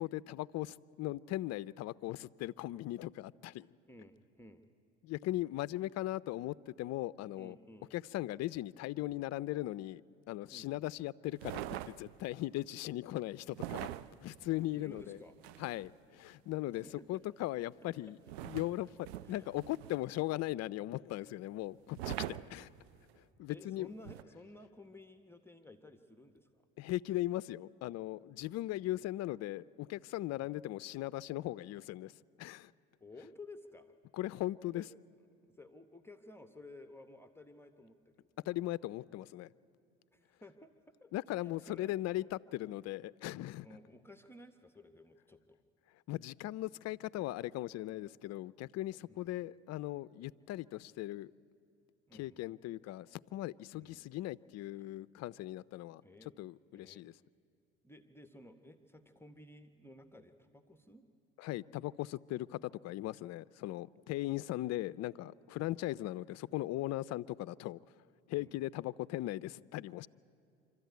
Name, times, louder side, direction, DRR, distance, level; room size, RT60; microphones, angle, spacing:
voice 1, 0.0-3.7 5.0-7.5 7.9-10.0 10.3-13.9 14.2-15.2 15.6-18.2 18.4-22.7 23.4-23.9 26.8-32.1 32.4-32.7 34.1-34.8 38.5-39.5 41.1-43.7 46.1-51.3 52.1-56.0 56.4-57.1 61.4-67.8 68.3-70.1, left 16 dB, 55° left, 0.5 m, -38 dB
voice 2, 3.9-4.6 7.3-7.9 10.5-10.7 14.7-15.4 16.7-17.2 19.2-19.5 21.2-21.3 23.5-26.6 33.0-33.9 34.7-34.9 35.4-38.3 40.1-41.1 41.4-42.0 43.6-45.6 47.7-47.8 49.1-49.4 52.1-52.5 53.8-54.1 54.8-54.9 56.0-56.3 56.7-57.1 57.8-61.0 65.6-65.7 68.4-68.5, left 2 dB, 5° left, 1.0 m, -55 dB
sound 1, 11.4-12.3 13.5-15.9 18.3-20.2 21.9-23.1 24.0-24.2, right 13 dB, 90° right, 0.5 m, -43 dB
25.5 x 13.5 x 9.3 m
hypercardioid pair, 65°, 31 cm